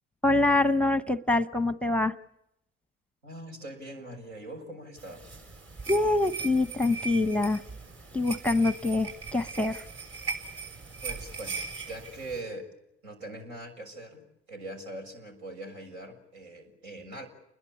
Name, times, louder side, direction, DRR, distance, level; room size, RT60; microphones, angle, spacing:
voice 1, 0.2-2.1 5.9-7.6 8.1-9.9, left 2 dB, 5° left, 12 dB, 1.0 m, -25 dB
voice 2, 3.2-5.3 11.0-12.7 13.0-17.3, right 1 dB, 75° right, 3 dB, 6.6 m, -42 dB
sound 1, 5.0-12.4, right 4 dB, 45° right, 7.1 m, -39 dB
30.0 x 21.5 x 8.6 m, 0.82 s
figure-of-eight pair, 55°, 33 cm